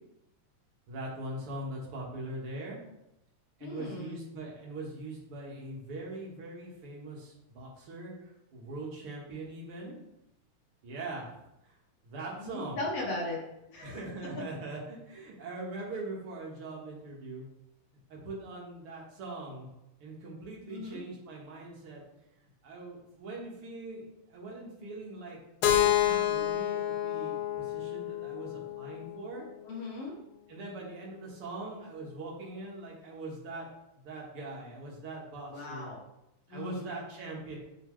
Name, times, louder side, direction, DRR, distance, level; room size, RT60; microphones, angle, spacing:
voice 1, 0.9-2.8 3.6-10.0 10.8-11.7 12.0-12.8 13.8-17.5 18.1-19.7 20.0-22.0 22.6-25.4 25.7-29.5 30.5-33.7 33.9-35.9 36.5-37.6, right 2 dB, 50° right, -3 dB, 2.4 m, -42 dB
voice 2, 3.6-4.2 12.3-13.4 13.7-14.0 20.7-21.0 29.6-30.1 35.5-36.0 36.5-36.8, left 2 dB, 55° left, -2 dB, 2.3 m, -37 dB
Keyboard (musical), 25.6-29.5, left 12 dB, 90° left, 2.3 m, -29 dB
10.0 x 4.6 x 3.3 m, 0.87 s
omnidirectional pair, 3.6 m